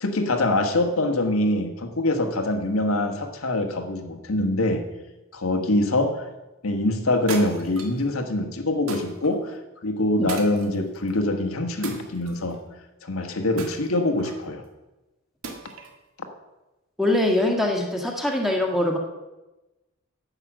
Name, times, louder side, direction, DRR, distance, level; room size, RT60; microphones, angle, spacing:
voice 1, 0.0-4.8 5.3-6.2 6.6-9.6 9.8-12.6 13.0-14.6, left 1 dB, 85° left, 4 dB, 1.4 m, -24 dB
sound 1, 7.3-8.0 8.9-9.3 10.3-11.1 11.8-12.6 13.6-14.4 15.4-16.0, right 4 dB, 80° right, 1.8 m, -38 dB
voice 2, 17.0-19.0, left 1 dB, ahead, 0 dB, 1.5 m, -23 dB
11.0 x 8.0 x 6.2 m, 1.0 s
head